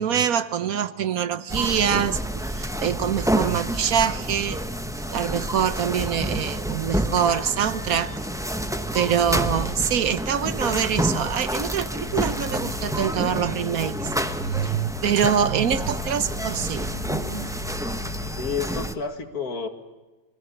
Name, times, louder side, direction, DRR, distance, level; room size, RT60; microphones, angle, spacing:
voice 1, 0.0-4.6 5.1-8.1 8.9-14.1 14.4-17.6, right 8 dB, 70° right, 1.4 m, -25 dB
sound 1, 1.5-18.9, right 1 dB, 5° right, 0.8 m, -29 dB
sound 2, 12.0-18.6, left 1 dB, 50° right, 7.4 m, -39 dB
voice 2, 18.4-19.7, left 5 dB, 75° left, 2.5 m, -30 dB
27.0 x 21.5 x 7.0 m
omnidirectional pair, 1.6 m